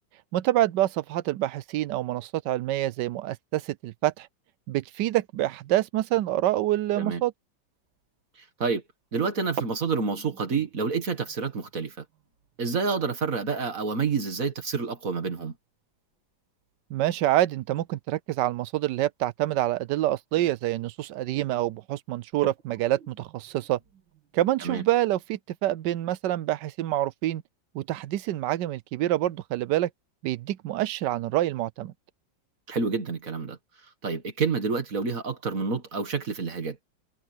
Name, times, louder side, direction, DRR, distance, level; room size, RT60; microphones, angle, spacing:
voice 1, 0.3-4.3 4.7-7.3 16.9-23.8 24.3-27.4 27.7-29.9 30.2-31.9, right 14 dB, 75° right, 1.2 m, -27 dB
sound 1, 7.9-8.2 9.4-15.9 16.1-16.2 16.6-17.0 18.0-18.1 18.8-18.9 19.4-19.5 19.9-20.2 20.8-21.2 21.6-21.7 22.3-24.6, right 6 dB, 90° right, 2.4 m, -45 dB
voice 2, 9.1-12.0 12.6-15.5 24.6-24.8 32.7-33.6 34.0-36.8, right 5 dB, 45° right, 2.1 m, -28 dB
omnidirectional pair, 2.0 m